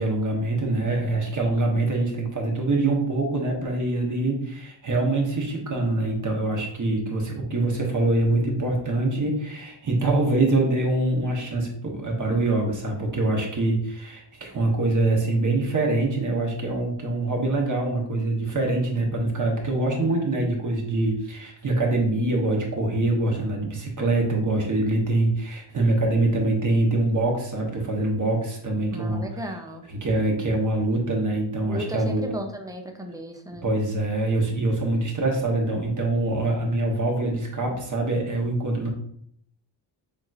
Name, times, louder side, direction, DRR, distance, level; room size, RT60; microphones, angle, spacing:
voice 1, 0.0-29.2 30.0-32.2 33.6-38.9, right 2 dB, 40° right, 0 dB, 1.1 m, -24 dB
voice 2, 28.9-29.9 31.7-33.7, equal, 10° right, 4 dB, 0.5 m, -35 dB
6.9 x 3.0 x 2.5 m, 0.68 s
wide cardioid pair, 130°, 47 cm